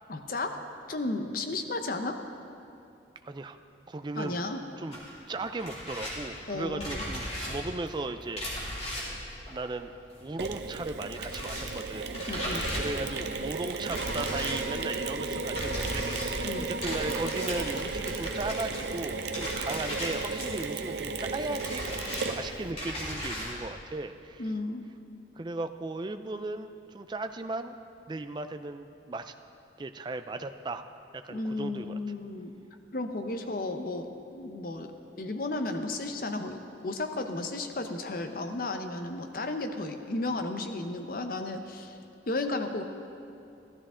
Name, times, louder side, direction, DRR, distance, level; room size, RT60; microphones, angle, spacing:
voice 1, 0.1-2.2 4.2-4.6 6.5-7.1 12.3-12.7 16.4-16.7 24.4-24.8 31.3-32.5 32.9-34.9 35.2-41.9 42.3-42.8, left 2 dB, 50° left, 6 dB, 0.8 m, -34 dB
voice 2, 3.2-3.6 3.9-4.4 4.8-5.0 5.3-8.4 9.5-9.9 10.2-12.4 12.7-24.4 25.4-27.8 28.1-29.3 29.8-30.8 31.1-32.0, right 2 dB, 25° right, 8 dB, 0.4 m, -36 dB
sound 1, 4.9-10.4 10.7-23.6, equal, 35° left, 2.8 m, -37 dB
Mechanisms, 10.4-22.7, right 4 dB, 65° right, 0.6 m, -35 dB
14.5 x 12.5 x 3.7 m, 2.6 s
head